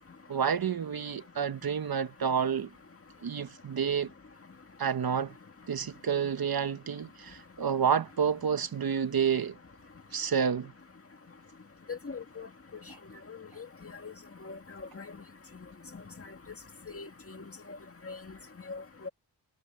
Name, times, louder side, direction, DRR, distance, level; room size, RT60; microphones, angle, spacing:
voice 1, 0.3-2.7 3.2-4.1 4.8-5.4 5.7-9.6 10.1-10.7, right 7 dB, 60° right, 1.1 m, -29 dB
voice 2, 11.9-12.5 13.3-13.7 14.0-14.1 14.4-14.6 15.0-15.1 16.9-17.1 18.1-18.2 18.7-19.1, left 4 dB, 35° left, 2.0 m, -40 dB
wide cardioid pair, 110°, 42 cm